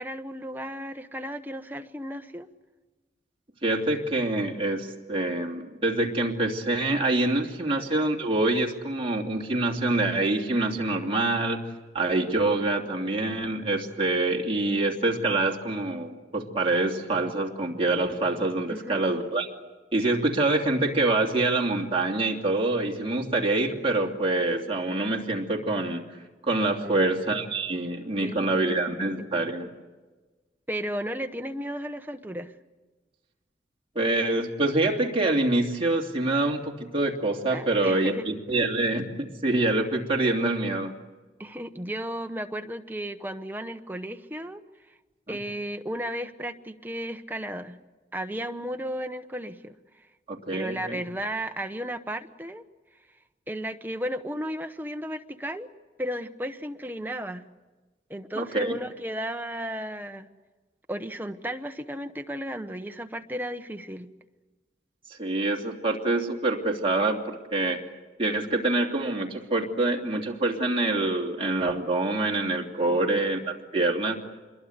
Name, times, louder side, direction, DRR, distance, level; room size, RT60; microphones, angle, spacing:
voice 1, 0.0-2.5 7.6-7.8 18.7-19.0 26.8-27.2 28.2-28.7 30.7-32.5 37.5-38.3 41.4-44.6 45.3-47.8 48.1-49.8 50.5-52.6 53.5-55.7 56.0-57.4 58.1-60.3 60.9-64.1 72.9-73.2, equal, 10° right, 6 dB, 1.0 m, -34 dB
voice 2, 3.6-11.6 11.9-19.5 19.9-26.2 26.4-29.7 33.9-40.9 45.3-45.4 50.3-51.0 58.4-58.7 65.1-67.8 68.2-74.2, right 2 dB, 30° right, 0 dB, 2.8 m, -26 dB
26.5 x 22.5 x 8.1 m, 1.3 s
head